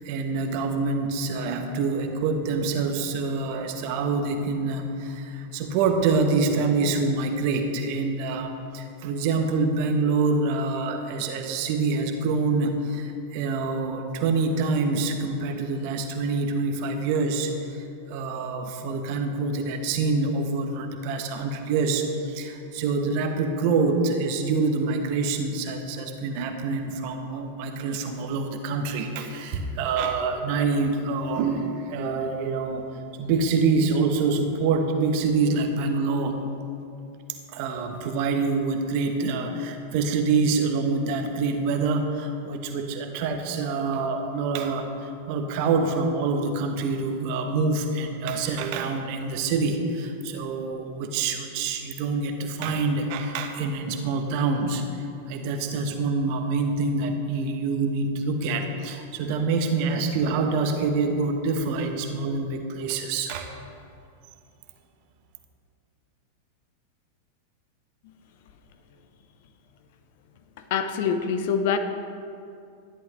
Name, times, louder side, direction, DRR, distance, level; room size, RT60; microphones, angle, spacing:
voice 1, 0.0-32.9 33.2-36.4 37.5-63.5, right 4 dB, 45° right, 5 dB, 1.1 m, -26 dB
voice 2, 70.7-71.8, left 7 dB, 50° left, 8 dB, 0.8 m, -24 dB
13.5 x 10.5 x 3.2 m, 2.5 s
figure-of-eight pair, 90°, 0 cm